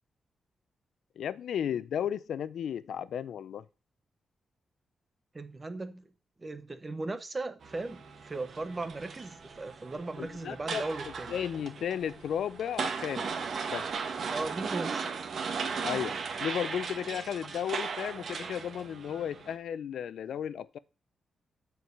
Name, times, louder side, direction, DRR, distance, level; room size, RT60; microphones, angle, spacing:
voice 1, 1.2-3.6 10.2-10.8 11.3-13.4 13.7-13.8 15.8-20.8, left 9 dB, 85° left, 0.6 m, -34 dB
voice 2, 5.3-6.1 6.4-11.4 14.3-15.1 17.4-17.6, right 2 dB, 20° right, 1.0 m, -37 dB
sound 1, 7.6-19.5, right 5 dB, 50° right, 1.5 m, -37 dB
13.0 x 4.8 x 6.7 m
wide cardioid pair, 175°, 0 cm